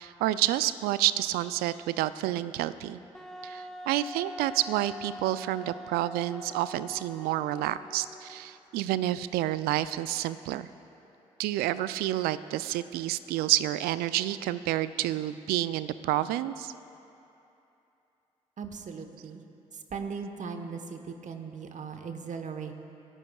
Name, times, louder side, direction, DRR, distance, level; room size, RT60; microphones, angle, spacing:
voice 1, 0.0-3.0 3.4-10.7 11.4-16.7, right 14 dB, 75° right, 15 dB, 0.4 m, -29 dB
Wind instrument woodwind instrument, 3.1-8.6, equal, 5° left, 1.0 m, -44 dB
voice 2, 18.6-19.4 19.9-22.7, right 5 dB, 50° right, 6 dB, 1.2 m, -38 dB
25.5 x 11.5 x 2.4 m, 2.8 s
hypercardioid pair, 40°, 16 cm